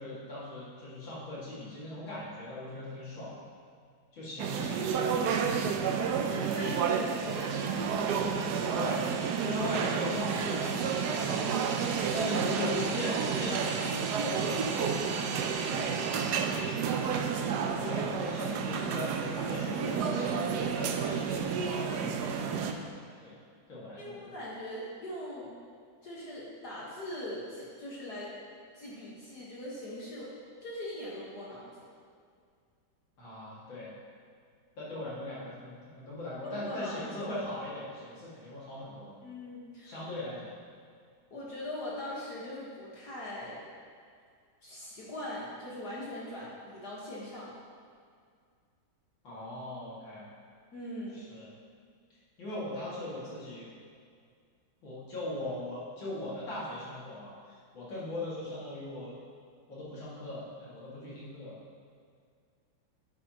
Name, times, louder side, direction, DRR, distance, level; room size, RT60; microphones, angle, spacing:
voice 1, 0.0-3.3 4.1-6.0 8.7-9.1 9.4-11.6 12.1-15.0 15.4-16.2 16.9-17.1 17.8-22.9 23.2-23.3 23.7-24.4 33.2-33.9 34.8-39.1 39.8-40.6 49.2-50.3 51.1-51.5 52.4-53.7 54.8-59.2 59.7-61.6, left 1 dB, 70° left, -8 dB, 2.8 m, -39 dB
sound 1, 4.4-22.7, right 6 dB, 70° right, 1.0 m, -30 dB
voice 2, 6.3-8.3 11.2-11.4 24.0-25.5 26.0-28.3 28.7-30.3 30.6-31.7 36.4-37.0 39.2-40.0 41.3-43.6 44.6-47.6 50.7-51.2, left 1 dB, 55° left, -7 dB, 1.9 m, -41 dB
10.5 x 8.4 x 2.9 m, 2.2 s
omnidirectional pair, 2.2 m